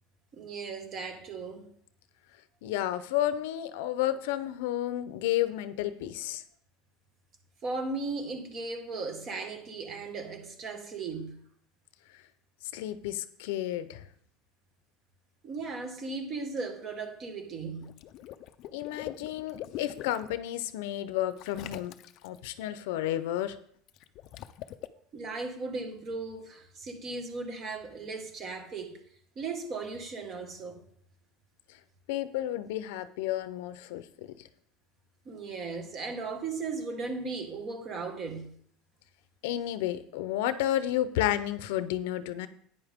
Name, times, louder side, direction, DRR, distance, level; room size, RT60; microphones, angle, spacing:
voice 1, 0.3-1.7 7.6-11.4 15.4-17.9 25.1-29.0 29.3-30.8 35.2-38.5, right 3 dB, 35° right, 1.8 m, -37 dB
voice 2, 2.6-6.4 12.7-14.0 18.7-21.9 22.2-23.5 32.1-34.0 39.4-42.5, left 13 dB, 80° left, 0.7 m, -31 dB
Water / Liquid, 17.8-20.3 21.4-22.4 23.9-24.9, left 12 dB, 50° left, 0.5 m, -43 dB
11.0 x 9.4 x 3.7 m
cardioid pair, 145°, 0 cm